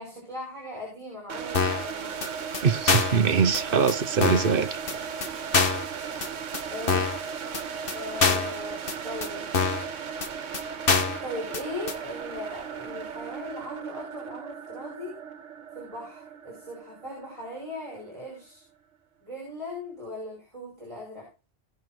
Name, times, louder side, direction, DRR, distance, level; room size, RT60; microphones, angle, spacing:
voice 1, 0.0-2.1 6.7-7.0 7.9-9.5 11.2-15.1 15.7-18.6 19.2-21.3, left 1 dB, 25° right, 5.1 m, -38 dB
sound 1, 1.3-18.1, right 6 dB, 80° right, 1.4 m, -36 dB
sound 2, 1.5-1.9 2.2-2.3 2.5-2.6 2.9-3.2 3.5-3.6 3.9-4.0 4.2-4.5 4.9-5.0 5.2-5.3 5.5-5.9 6.2-6.3 6.5-6.6 6.9-7.2 7.5-7.6 7.9-8.0 8.2-8.5 8.9-9.0 9.2-9.3 9.5-9.9 10.2-10.3 10.5-10.6 10.9-11.2 11.5-11.6 11.9-12.0, left 5 dB, 50° left, 1.5 m, -24 dB
voice 2, 2.6-4.8, right 6 dB, 50° right, 1.0 m, -23 dB
18.0 x 6.1 x 3.8 m
omnidirectional pair, 1.2 m